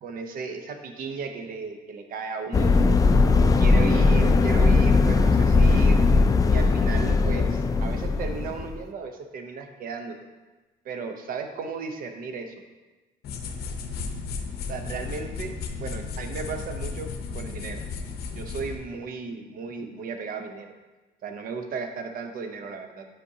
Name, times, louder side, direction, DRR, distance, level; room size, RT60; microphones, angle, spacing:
voice 1, 0.0-3.0 3.6-6.1 6.5-10.2 10.8-12.5 14.7-15.5 15.8-17.9 18.3-20.7 21.2-23.1, right 5 dB, 55° right, 6 dB, 0.8 m, -35 dB
sound 1, 2.5-8.8, left 3 dB, 20° left, 0.4 m, -19 dB
sound 2, 13.2-18.7, left 5 dB, 70° left, 0.7 m, -34 dB
8.3 x 5.1 x 2.8 m, 1.2 s
cardioid pair, 110°, 17 cm